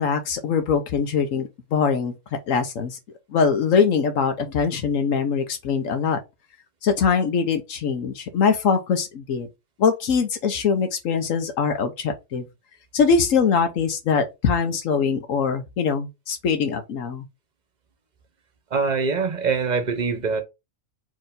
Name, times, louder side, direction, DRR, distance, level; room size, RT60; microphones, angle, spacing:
voice 1, 0.0-2.1 2.5-3.0 3.3-6.2 6.8-9.5 9.8-12.4 12.9-17.3, left 6 dB, 80° left, 1.2 m, -22 dB
voice 2, 18.7-20.4, right 5 dB, 40° right, 0.8 m, -23 dB
4.6 x 3.1 x 3.7 m
omnidirectional pair, 1.4 m